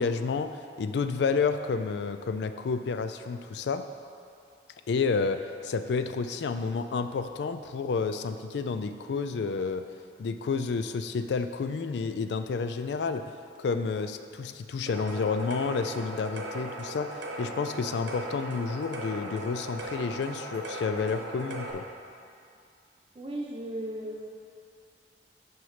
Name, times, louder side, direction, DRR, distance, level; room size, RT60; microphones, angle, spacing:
voice 1, 0.0-3.9 4.9-9.9 10.2-13.3 13.6-21.8, left 5 dB, 70° left, 9 dB, 0.3 m, -30 dB
sound 1, 14.9-21.7, right 1 dB, 90° right, 0.9 m, -38 dB
voice 2, 23.1-24.3, right 1 dB, 30° right, -1 dB, 0.8 m, -36 dB
6.1 x 4.6 x 5.6 m, 2.4 s
head